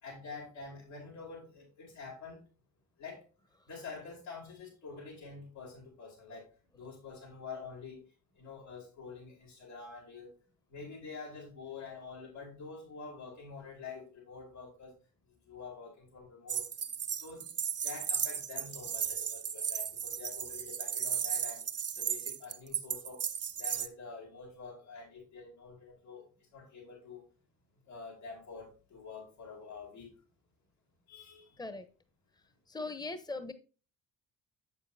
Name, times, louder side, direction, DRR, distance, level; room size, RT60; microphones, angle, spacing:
voice 1, 0.0-2.4 3.0-3.2 3.7-8.0 8.4-10.3 10.7-15.0 15.4-17.4 17.8-21.7 21.9-23.2 23.6-26.2 26.5-27.2 27.9-30.2 31.1-31.6, left 4 dB, 80° left, -4 dB, 4.3 m, -47 dB
sound 1, 16.5-23.9, right 8 dB, 35° right, 0.7 m, -35 dB
voice 2, 32.7-33.5, left 3 dB, 10° left, 10 dB, 1.0 m, -39 dB
7.6 x 7.0 x 2.8 m, 0.35 s
hypercardioid pair, 50°, 45 cm